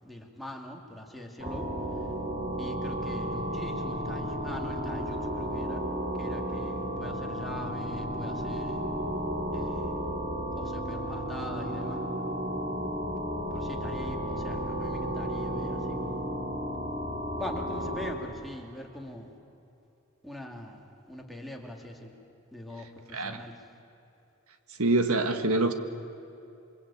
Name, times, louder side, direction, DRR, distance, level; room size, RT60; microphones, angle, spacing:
voice 1, 0.0-1.6 2.6-5.9 6.1-8.8 9.5-9.9 10.5-12.0 13.5-16.3 17.4-19.4 20.2-22.1 22.5-23.6, left 1 dB, ahead, 0 dB, 2.8 m, -42 dB
sound 1, 1.4-18.1, equal, 35° right, 4.7 m, -33 dB
voice 2, 24.8-25.7, right 2 dB, 85° right, 7 dB, 1.6 m, -25 dB
27.5 x 24.5 x 8.7 m, 2.9 s
head